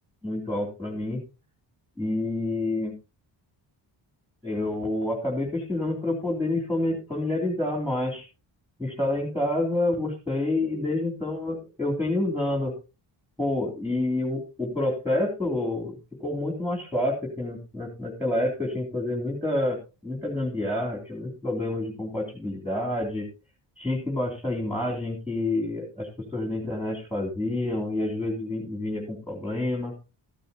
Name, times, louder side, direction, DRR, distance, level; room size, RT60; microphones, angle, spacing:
voice 1, 0.2-1.2 2.0-2.9 4.4-8.3 8.8-12.7 13.4-19.8 20.0-23.3 23.8-29.9, left 1 dB, 5° right, -1 dB, 3.4 m, -28 dB
14.0 x 12.5 x 2.8 m, 0.29 s
wide cardioid pair, 140°, 45 cm